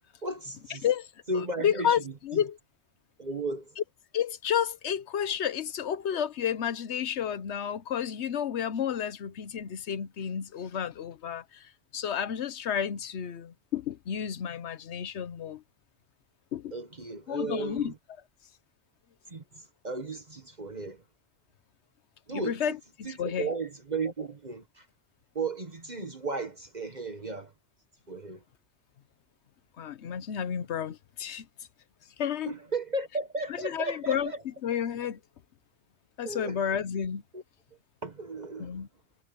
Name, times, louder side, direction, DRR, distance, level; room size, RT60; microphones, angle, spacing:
voice 1, 0.2-0.8 1.3-2.1 3.2-3.8 16.7-17.9 19.3-21.0 22.3-22.7 23.0-24.9 25.3-27.5 28.1-28.4 32.4-34.4 36.2-36.6 37.3-37.4 38.0-38.8, right 3 dB, 40° right, 1.6 m, -35 dB
voice 2, 1.6-2.6 4.1-15.6 16.5-16.7 17.3-17.9 22.3-23.5 29.8-31.5 32.2-32.5 33.6-34.3 34.6-35.2 36.2-37.2 38.6-38.9, left 8 dB, 80° left, 1.1 m, -31 dB
omnidirectional pair, 1.1 m